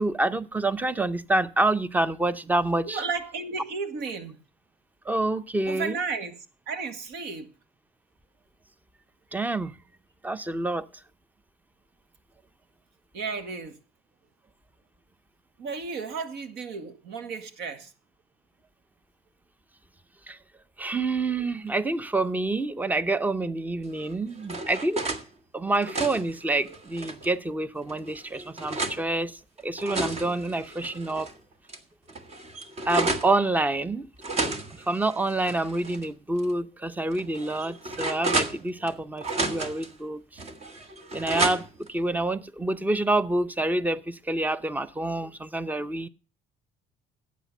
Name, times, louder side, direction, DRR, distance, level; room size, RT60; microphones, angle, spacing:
voice 1, 0.0-3.0 5.1-6.0 9.3-9.7 10.2-10.9 20.3-20.4 20.8-25.0 25.5-31.3 32.9-34.0 34.9-40.4 41.1-46.1, right 2 dB, 10° right, 0.7 m, -27 dB
voice 2, 2.8-4.4 5.7-6.4 6.7-7.5 13.1-13.8 15.6-17.9, right 4 dB, 85° right, 1.8 m, -33 dB
sound 1, 24.0-25.2 25.7-27.3 27.9-29.0 29.6-31.3 31.7-31.8 32.1-33.3 34.2-36.1 36.4-36.5 37.1-38.9 39.2-39.9 40.4-41.9, right 2 dB, 40° right, 1.6 m, -32 dB
12.0 x 8.5 x 5.5 m
cardioid pair, 110°, 17 cm